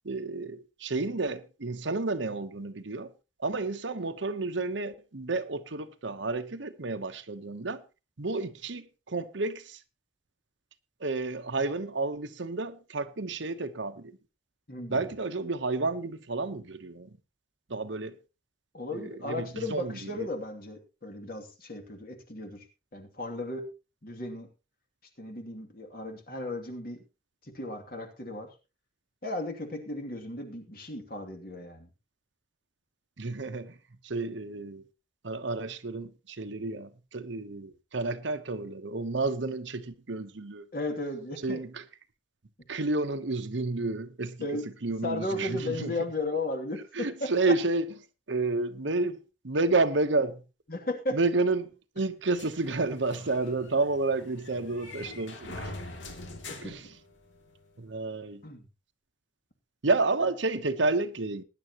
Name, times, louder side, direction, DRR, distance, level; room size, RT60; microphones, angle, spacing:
voice 1, 0.0-3.1 3.4-7.8 8.2-9.8 11.0-14.1 14.9-17.1 17.7-18.2 18.9-20.3 33.2-33.7 34.0-34.8 35.2-40.6 41.4-41.8 42.7-45.9 46.9-47.9 48.3-50.4 51.1-51.7 52.0-55.7 56.6-56.9 57.8-58.4 59.8-61.4, right 3 dB, 75° right, 1.0 m, -30 dB
voice 2, 14.7-15.1 18.7-22.6 22.9-23.6 24.0-24.5 25.2-27.0 27.5-28.5 29.2-31.9 40.7-41.6 44.4-44.7 45.0-47.5 50.7-51.2 56.5-56.7 58.4-58.7 60.2-60.3, left 2 dB, 50° left, 2.7 m, -35 dB
sound 1, 52.3-57.6, left 2 dB, 80° left, 2.6 m, -44 dB
19.0 x 10.5 x 3.0 m
head